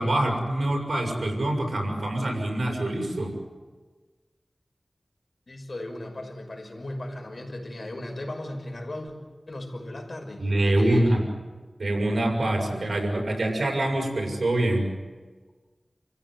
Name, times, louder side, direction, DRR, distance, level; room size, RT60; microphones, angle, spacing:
voice 1, 0.0-3.4 10.4-11.3 11.8-14.9, right 1 dB, 75° right, 1 dB, 6.7 m, -25 dB
voice 2, 5.5-9.1 9.5-11.2, left 1 dB, 60° left, 3 dB, 5.9 m, -37 dB
29.0 x 15.5 x 9.7 m, 1.4 s
wide cardioid pair, 65°, 0 cm